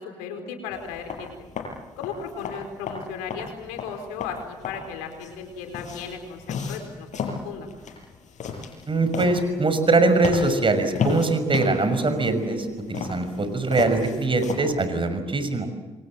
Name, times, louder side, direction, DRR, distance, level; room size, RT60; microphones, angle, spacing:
voice 1, 0.0-1.3 2.0-6.4 6.7-7.7, left 6 dB, 90° left, 5 dB, 4.6 m, -36 dB
sound 1, 0.7-14.6, left 5 dB, 60° left, 7.2 m, -34 dB
voice 2, 8.9-15.7, right 3 dB, 40° right, 10 dB, 6.0 m, -22 dB
28.0 x 24.0 x 7.6 m, 1.2 s
hypercardioid pair, 50°, 14 cm